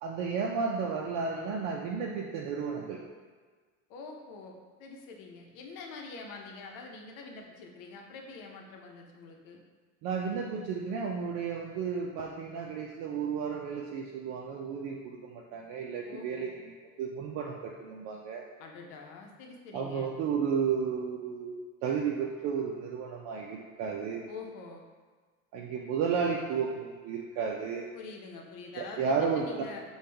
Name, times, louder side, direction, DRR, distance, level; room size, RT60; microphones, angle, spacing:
voice 1, 0.0-3.0 10.0-18.4 19.7-24.3 25.5-27.9 28.7-29.5, right 6 dB, 65° right, -1 dB, 0.6 m, -33 dB
voice 2, 3.9-9.6 16.1-16.5 18.6-20.1 24.3-24.8 27.9-29.8, left 4 dB, 65° left, 1 dB, 0.8 m, -45 dB
5.2 x 2.4 x 3.3 m, 1.5 s
supercardioid pair, 95°, 35 cm